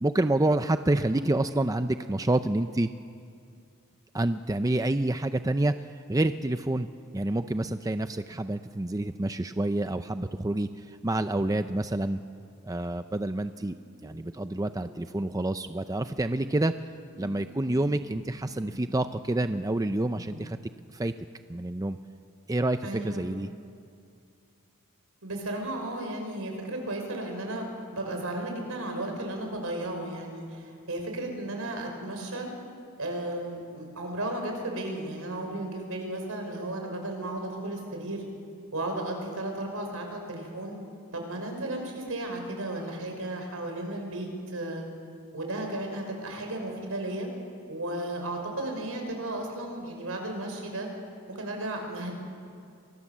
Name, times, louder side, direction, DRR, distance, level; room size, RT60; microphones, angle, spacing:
voice 1, 0.0-2.9 4.1-5.7 6.1-6.9 7.1-12.2 12.6-13.8 14.0-16.7 17.2-20.6 20.9-21.1 21.5-22.0 22.5-23.5, right 1 dB, 15° right, 9 dB, 0.6 m, -28 dB
sound 1, 13.9-15.0 15.3-15.4 15.8-19.2 19.8-20.5, equal, 40° right, 6.6 m, -49 dB
voice 2, 22.8-23.3 25.2-32.5 33.0-38.2 38.7-40.8 41.1-44.9 45.3-47.3 47.7-50.9 51.3-52.1, right 1 dB, 70° right, 3 dB, 6.0 m, -34 dB
29.0 x 24.0 x 7.4 m, 2.4 s
head